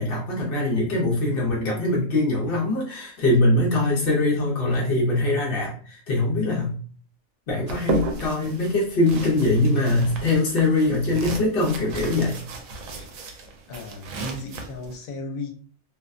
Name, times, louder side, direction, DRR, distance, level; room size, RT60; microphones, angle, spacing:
voice 1, 0.0-6.7 7.5-12.4, left 2 dB, 50° left, 0.8 m, -22 dB
sound 1, 7.7-14.9, right 3 dB, 75° right, 1.0 m, -33 dB
voice 2, 13.7-15.5, left 3 dB, 85° left, 1.1 m, -35 dB
2.6 x 2.2 x 2.4 m
omnidirectional pair, 1.4 m